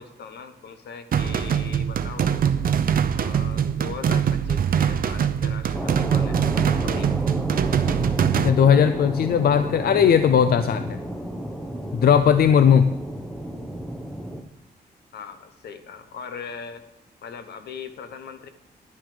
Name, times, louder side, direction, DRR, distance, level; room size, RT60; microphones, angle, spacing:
voice 1, 0.0-2.5 3.1-7.1 15.1-16.8 17.2-18.5, left 6 dB, 80° left, 9 dB, 1.1 m, -40 dB
sound 1, 1.1-8.5, right 8 dB, 55° right, 0.7 m, -23 dB
sound 2, 5.7-14.4, right 1 dB, 5° left, 1.1 m, -32 dB
voice 2, 8.3-11.0 11.9-12.9, left 8 dB, 65° left, 10 dB, 0.5 m, -18 dB
11.5 x 9.4 x 5.0 m, 0.92 s
wide cardioid pair, 130°, 17 cm